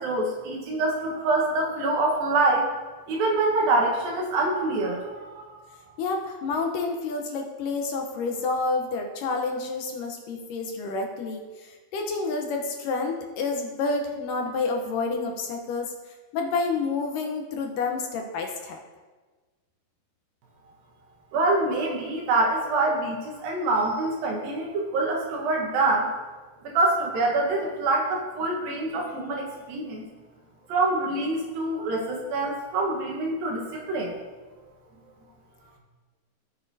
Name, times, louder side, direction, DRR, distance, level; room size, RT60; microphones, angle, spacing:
voice 1, 0.0-2.7 3.1-5.8 21.3-26.1 26.6-30.1 30.7-34.1, right 2 dB, 80° right, 0 dB, 3.1 m, -25 dB
voice 2, 6.0-15.9 16.3-18.8, left 3 dB, 75° left, 2 dB, 2.4 m, -29 dB
15.5 x 6.5 x 2.7 m, 1.3 s
omnidirectional pair, 4.1 m